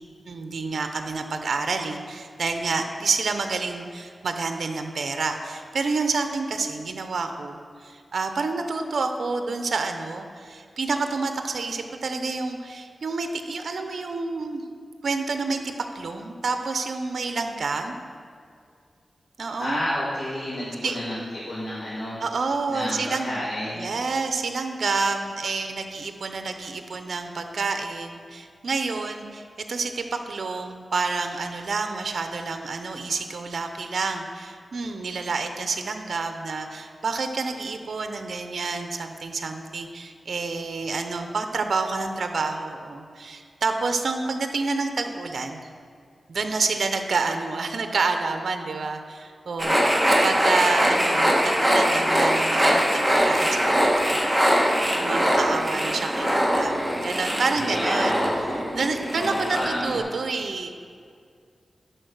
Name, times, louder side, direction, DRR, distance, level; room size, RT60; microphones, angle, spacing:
voice 1, 0.3-14.6 15.0-17.9 19.4-19.8 20.8-21.0 22.2-23.3 23.8-45.6 46.3-53.6 54.0-54.2 54.9-58.4 58.7-60.7, right 4 dB, 75° right, 6 dB, 0.7 m, -28 dB
voice 2, 19.6-22.2 22.7-23.8 57.6-58.3 59.1-59.9, left 1 dB, 50° left, -8 dB, 1.9 m, -30 dB
sound 1, 49.6-60.0, equal, ahead, 1.7 m, -22 dB
11.0 x 4.5 x 6.5 m, 2.2 s
wide cardioid pair, 80°, 0 cm